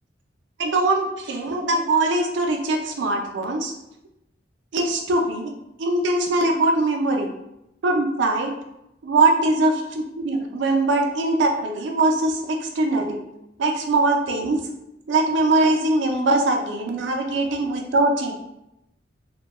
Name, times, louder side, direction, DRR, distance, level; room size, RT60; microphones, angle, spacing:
voice 1, 0.6-3.7 4.7-5.5 5.8-7.3 7.8-8.5 9.0-9.7 10.2-13.2 13.6-14.6 15.1-18.4, right 2 dB, 70° right, 3 dB, 0.4 m, -21 dB
2.2 x 2.2 x 2.9 m, 0.86 s
head